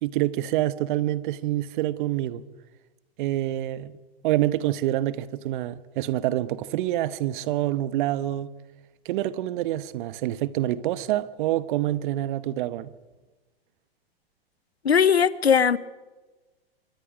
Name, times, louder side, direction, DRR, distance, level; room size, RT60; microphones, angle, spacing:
voice 1, 0.0-2.4 3.2-4.0 4.2-8.5 9.0-12.9, right 14 dB, 55° right, 1.2 m, -26 dB
voice 2, 14.8-15.8, left 7 dB, 90° left, 1.0 m, -19 dB
25.5 x 24.0 x 5.1 m
hypercardioid pair, 105°, 31 cm